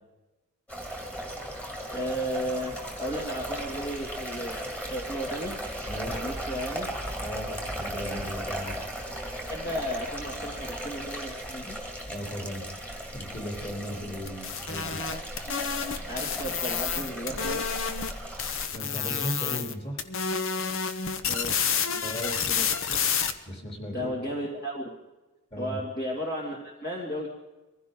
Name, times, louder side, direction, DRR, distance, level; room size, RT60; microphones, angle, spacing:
sound 1, 0.7-18.7, right 1 dB, 5° left, 2.1 m, -36 dB
voice 1, 1.9-5.6 6.1-6.9 9.4-11.8 16.1-17.6 21.2-21.6 21.9-22.7 23.9-24.8 25.6-27.3, equal, 45° left, -2 dB, 2.4 m, -34 dB
voice 2, 5.9-6.2 7.2-8.8 12.1-12.6 13.1-15.0 18.7-20.0 22.0-22.3 23.5-24.1 25.5-25.8, equal, 25° left, 1 dB, 3.4 m, -36 dB
sound 2, 14.3-18.1 18.4-19.7 20.0-23.3, left 6 dB, 60° left, 1.0 m, -29 dB
24.0 x 15.5 x 3.9 m, 1.1 s
head